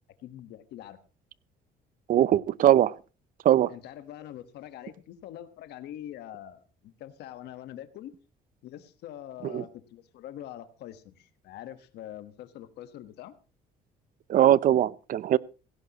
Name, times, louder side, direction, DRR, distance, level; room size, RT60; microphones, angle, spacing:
voice 1, 0.2-1.0 3.7-8.1 8.6-13.3, left 12 dB, 75° left, 1.4 m, -44 dB
voice 2, 2.1-2.9 3.4-3.7 9.4-9.6 14.3-15.4, right 12 dB, 55° right, 0.6 m, -21 dB
17.0 x 16.0 x 3.0 m
cardioid pair, 110°, 17 cm